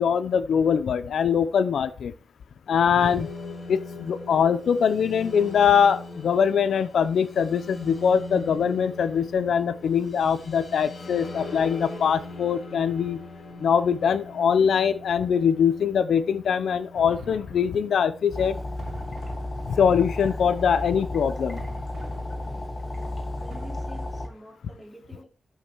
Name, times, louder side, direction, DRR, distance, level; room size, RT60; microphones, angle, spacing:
voice 1, 0.0-2.1 2.7-3.3 3.7-13.2 13.6-18.6 19.7-21.6, left 7 dB, 85° left, 13 dB, 0.8 m, -22 dB
sound 1, 3.0-19.1, left 2 dB, 55° left, 3.0 m, -41 dB
sound 2, 16.9-18.1 18.8-20.2 21.6-22.9 23.5-23.7, right 4 dB, 65° right, 2.5 m, -46 dB
sound 3, 18.3-24.3, left 1 dB, 35° left, 1.7 m, -33 dB
voice 2, 22.8-25.2, equal, ahead, -1 dB, 3.7 m, -47 dB
13.0 x 5.7 x 4.7 m, 0.34 s
wide cardioid pair, 115°, 0 cm